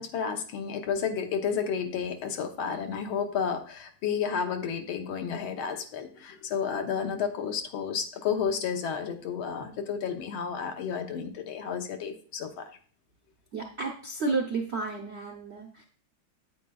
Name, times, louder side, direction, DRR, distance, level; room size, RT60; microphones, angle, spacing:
voice 1, 0.0-12.8, left 7 dB, 80° left, 5 dB, 1.7 m, -31 dB
voice 2, 13.5-15.8, right 3 dB, 65° right, 2 dB, 0.6 m, -32 dB
8.9 x 8.5 x 2.3 m, 0.42 s
omnidirectional pair, 2.3 m